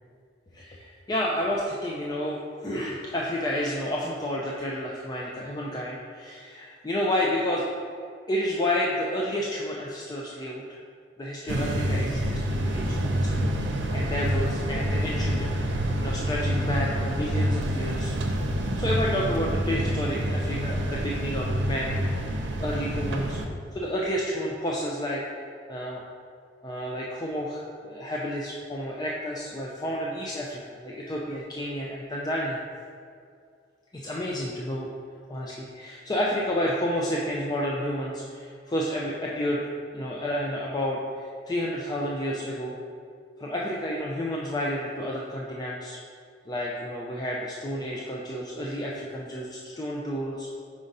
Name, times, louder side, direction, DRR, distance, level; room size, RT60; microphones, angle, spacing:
voice 1, 0.5-7.7 8.3-10.6 11.2-18.1 18.8-23.4 23.7-25.2 25.7-26.0 26.6-32.6 33.9-34.9 35.3-39.6 39.9-42.7 43.4-46.0 46.5-50.5, equal, 20° left, -3 dB, 0.4 m, -30 dB
sound 1, 11.5-23.5, equal, 85° right, 0.6 m, -27 dB
4.9 x 3.9 x 5.3 m, 2.2 s
head